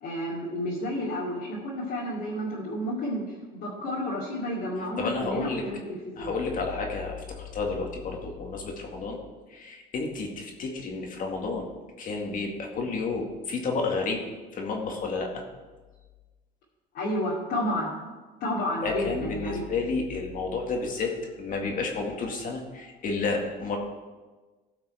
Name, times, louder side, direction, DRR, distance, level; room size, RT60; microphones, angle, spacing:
voice 1, 0.0-3.2 3.5-5.8 6.0-6.3 16.9-17.9 18.4-19.7, left 1 dB, 75° left, -7 dB, 2.5 m, -31 dB
voice 2, 5.0-5.6 6.2-9.2 9.5-11.7 12.0-14.2 14.5-15.4 18.8-23.8, left 4 dB, 55° left, 1 dB, 2.1 m, -31 dB
15.5 x 6.0 x 4.4 m, 1.3 s
cardioid pair, 110°, 17 cm